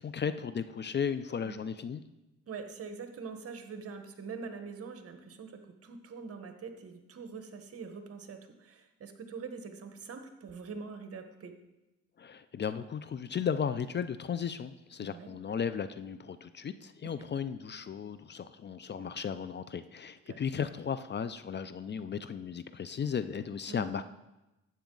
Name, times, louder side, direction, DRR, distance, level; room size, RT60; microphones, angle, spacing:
voice 1, 0.0-2.0 12.2-24.0, left 7 dB, 35° left, 13 dB, 0.5 m, -35 dB
voice 2, 2.5-11.5 15.0-15.3 17.2-17.3 20.3-20.4 23.7-23.8, right 5 dB, 50° right, 7 dB, 1.3 m, -44 dB
12.0 x 8.2 x 3.9 m, 0.99 s
cardioid pair, 90°, 30 cm